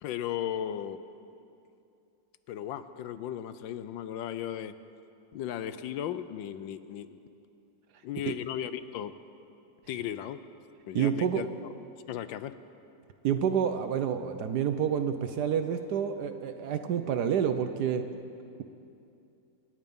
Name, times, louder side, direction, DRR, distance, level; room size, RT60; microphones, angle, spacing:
voice 1, 0.0-1.0 2.5-4.7 5.3-7.2 8.0-9.1 9.9-10.4 10.9-11.5 12.1-12.5, left 10 dB, 80° left, 13 dB, 1.3 m, -36 dB
voice 2, 10.9-11.4 13.2-18.0, right 8 dB, 65° right, 8 dB, 1.1 m, -28 dB
26.0 x 10.0 x 5.3 m, 2.6 s
omnidirectional pair, 2.1 m